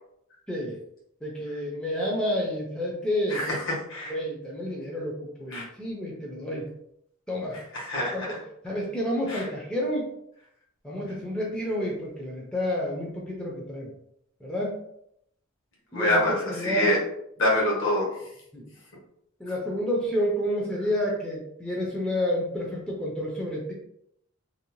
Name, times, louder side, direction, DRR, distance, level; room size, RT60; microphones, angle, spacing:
voice 1, 0.5-0.8 1.2-3.4 4.1-6.7 7.3-7.6 8.1-8.4 8.6-10.1 10.8-13.9 14.4-14.8 15.9-16.9 18.5-18.7 19.4-23.7, equal, 5° left, -3 dB, 0.4 m, -29 dB
voice 2, 3.3-4.2 5.5-5.7 7.7-8.2 9.3-9.4 15.9-16.3 16.6-17.0 17.4-18.1, left 1 dB, 65° left, -4 dB, 1.0 m, -25 dB
2.6 x 2.0 x 2.9 m, 0.76 s
head